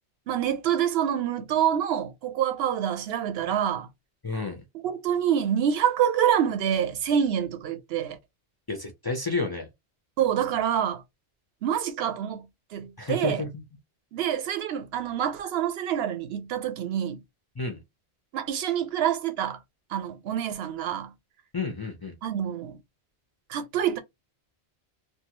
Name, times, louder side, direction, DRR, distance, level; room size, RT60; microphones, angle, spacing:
voice 1, 0.3-3.9 4.8-8.2 10.2-11.0 11.6-12.5 12.7-13.4 14.1-17.2 18.3-19.6 19.9-21.1 22.2-22.8 23.5-24.0, right 9 dB, 70° right, 0.8 m, -26 dB
voice 2, 4.2-4.6 8.7-9.7 13.0-13.5 17.6-17.8 21.5-22.1, left 3 dB, 35° left, 0.4 m, -30 dB
2.6 x 2.3 x 2.9 m
omnidirectional pair, 1.1 m